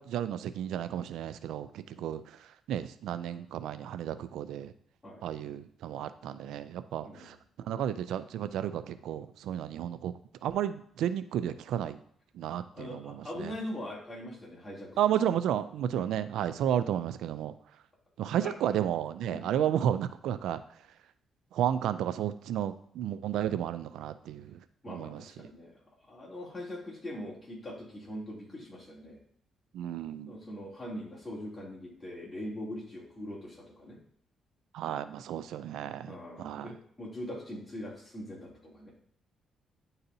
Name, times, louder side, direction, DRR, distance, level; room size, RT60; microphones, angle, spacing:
voice 1, 0.0-4.7 5.2-10.1 10.4-12.0 12.3-13.5 15.0-17.5 18.2-20.6 21.5-24.6 24.9-25.2 29.7-30.3 34.7-36.7, right 10 dB, 80° right, 12 dB, 0.3 m, -32 dB
voice 2, 7.0-7.4 12.7-15.0 15.9-16.1 18.4-18.5 19.3-19.4 24.8-25.7 26.1-29.2 30.3-34.0 36.1-38.9, left 1 dB, 15° left, -5 dB, 2.8 m, -42 dB
9.9 x 4.0 x 2.6 m, 0.65 s
cardioid pair, 90°, 0 cm